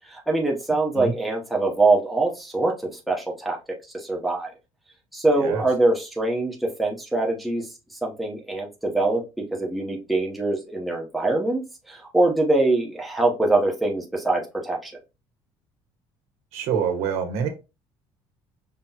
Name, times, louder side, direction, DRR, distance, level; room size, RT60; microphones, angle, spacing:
voice 1, 0.1-3.6 3.9-4.5 5.1-7.7 8.0-11.6 11.9-14.9, right 2 dB, ahead, 0.8 m, -23 dB
voice 2, 16.5-17.5, right 7 dB, 80° right, 1.1 m, -25 dB
5.4 x 3.0 x 2.3 m
cardioid pair, 170°, 10 cm